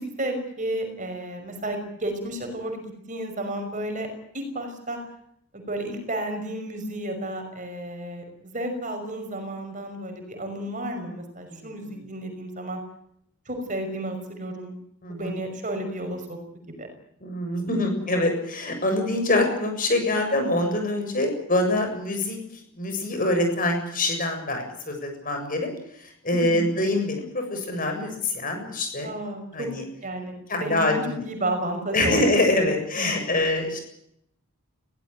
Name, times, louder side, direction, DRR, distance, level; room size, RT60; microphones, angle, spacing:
voice 1, 0.0-4.1 4.3-5.0 5.5-12.8 13.5-14.7 15.1-16.4 16.7-16.9 26.3-26.6 29.0-29.7 30.0-30.3 30.6-32.3 32.6-33.1, right 1 dB, 35° right, 5 dB, 5.7 m, -32 dB
voice 2, 11.5-12.0 15.0-15.4 17.2-22.4 22.8-25.7 26.2-29.1 29.5-29.8 30.5-31.2 31.9-33.8, left 2 dB, 40° left, 5 dB, 7.3 m, -25 dB
22.0 x 17.5 x 9.3 m, 0.73 s
head